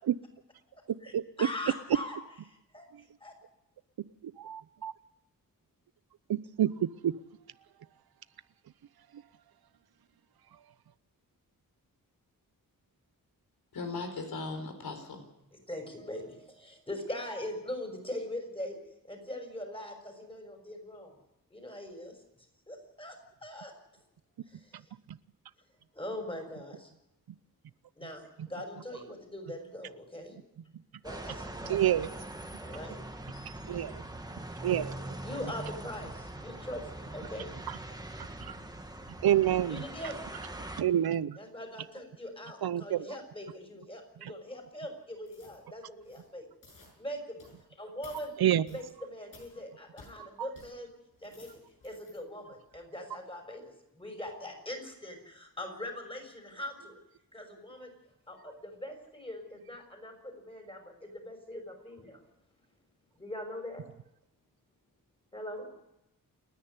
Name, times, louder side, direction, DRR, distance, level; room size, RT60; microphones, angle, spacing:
voice 1, 0.7-1.1 1.4-2.2 2.5-3.3 15.5-18.8 19.1-21.1 21.5-22.2 22.7-23.7 24.5-24.9 25.9-26.9 28.0-30.4 31.0-31.8 32.6-33.0 33.7-33.9 35.2-37.5 39.7-40.2 41.4-46.5 46.9-47.4 47.8-48.3 48.7-50.9 51.2-57.0 57.3-57.9 58.3-62.2 63.1-63.8 65.3-65.7, left 1 dB, 15° left, 4 dB, 6.0 m, -42 dB
voice 2, 4.2-4.9 6.3-7.2 9.1-9.2 25.1-25.2 31.7-32.1 33.6-34.0 34.6-34.9 37.7-37.8 38.2-38.6 39.2-39.8 40.8-41.4 42.6-43.1 44.2-44.3 48.4-48.7, right 11 dB, 90° right, 16 dB, 0.8 m, -28 dB
voice 3, 13.7-15.3, left 3 dB, 85° left, 6 dB, 4.4 m, -38 dB
sound 1, 31.0-40.8, right 1 dB, 10° right, 1.6 m, -42 dB
sound 2, 45.2-45.6 46.0-46.3 46.6-46.9 47.4-47.6 48.0-48.3 48.6-48.9 49.3-49.5 50.0-50.1 50.5-50.7 51.1-52.2 52.6-52.8, left 3 dB, 65° left, 7.4 m, -56 dB
29.0 x 10.5 x 9.8 m, 0.88 s
wide cardioid pair, 130°, 36 cm